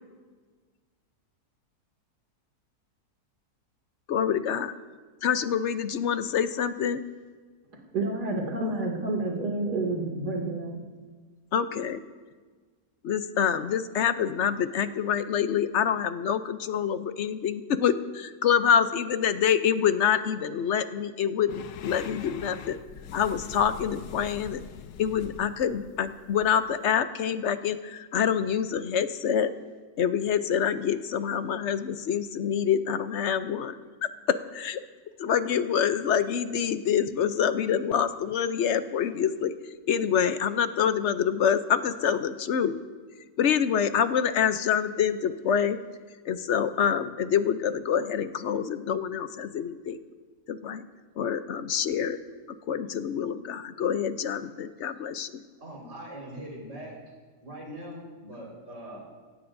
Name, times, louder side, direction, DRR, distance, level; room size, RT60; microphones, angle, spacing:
voice 1, 4.1-4.7 5.2-7.0 11.5-12.0 13.0-22.8 23.1-24.6 25.0-29.5 30.0-33.8 34.5-34.8 35.2-39.5 39.9-42.8 43.4-45.8 46.3-50.0 50.5-50.8 51.2-52.2 52.7-55.4, left 8 dB, 60° left, 11 dB, 0.8 m, -26 dB
voice 2, 7.7-10.9, right 2 dB, 85° right, -1 dB, 3.0 m, -29 dB
sound 1, 21.5-27.0, left 7 dB, 80° left, 1.3 m, -43 dB
voice 3, 55.6-56.9 57.4-59.1, right 1 dB, 45° right, -3 dB, 5.0 m, -41 dB
24.0 x 17.0 x 2.6 m, 1.4 s
omnidirectional pair, 1.7 m